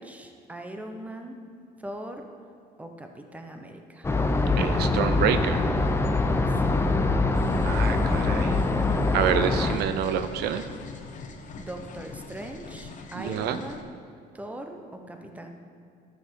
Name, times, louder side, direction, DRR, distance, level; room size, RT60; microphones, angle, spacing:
voice 1, 0.0-1.4 1.8-2.3 2.8-4.1 6.5-7.1 11.6-13.9 14.3-15.5, right 1 dB, 10° right, 4 dB, 0.9 m, -40 dB
sound 1, 4.0-9.8, left 3 dB, 15° left, 0.6 m, -24 dB
voice 2, 4.6-5.6 7.6-8.6 9.1-10.6 13.2-13.6, right 9 dB, 75° right, 10 dB, 0.5 m, -27 dB
sound 2, 7.3-13.8, left 4 dB, 50° left, 0.9 m, -44 dB
12.5 x 6.7 x 3.9 m, 2.4 s
cardioid pair, 110°, 17 cm